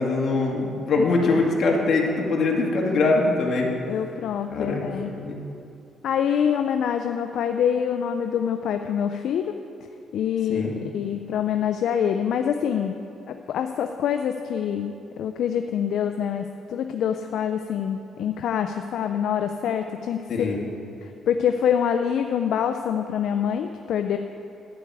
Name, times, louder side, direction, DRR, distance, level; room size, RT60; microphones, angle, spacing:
voice 1, 0.0-3.7 4.5-4.8 5.2-5.4 10.5-10.7 20.3-20.6, left 3 dB, 60° left, 0 dB, 1.8 m, -22 dB
voice 2, 1.0-1.4 3.9-5.1 6.0-9.5 10.1-13.0 13.3-20.3 21.0-24.2, left 8 dB, 75° left, 7 dB, 0.4 m, -25 dB
11.0 x 9.3 x 4.7 m, 2.6 s
cardioid pair, 90°, 0 cm